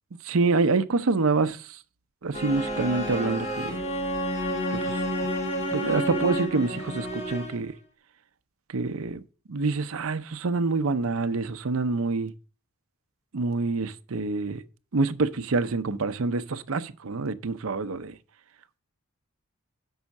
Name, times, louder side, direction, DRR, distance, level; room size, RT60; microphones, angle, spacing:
voice 1, 0.2-1.8 2.2-3.8 4.8-5.0 5.7-7.7 8.7-9.2 9.5-12.3 13.3-14.6 14.9-18.2, right 3 dB, 70° right, 0.6 m, -26 dB
sound 1, 2.3-7.7, equal, 30° left, 1.8 m, -30 dB
6.4 x 5.6 x 7.0 m
head